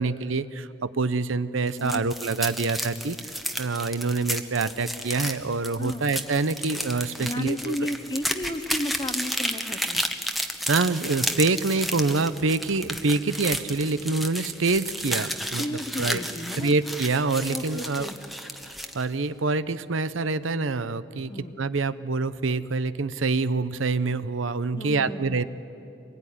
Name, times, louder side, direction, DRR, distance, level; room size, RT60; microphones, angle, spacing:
voice 1, 0.0-3.2 3.6-7.8 10.7-15.6 16.0-16.2 16.6-18.1 18.7-21.3 21.6-25.4, right 3 dB, 80° right, 14 dB, 0.8 m, -26 dB
sound 1, 1.7-19.0, equal, ahead, 1.0 m, -32 dB
voice 2, 7.2-10.0 15.6-16.8 17.5-18.2 21.3-21.5 24.7-25.4, left 1 dB, 20° left, 10 dB, 0.9 m, -33 dB
25.0 x 20.5 x 10.0 m, 2.8 s
head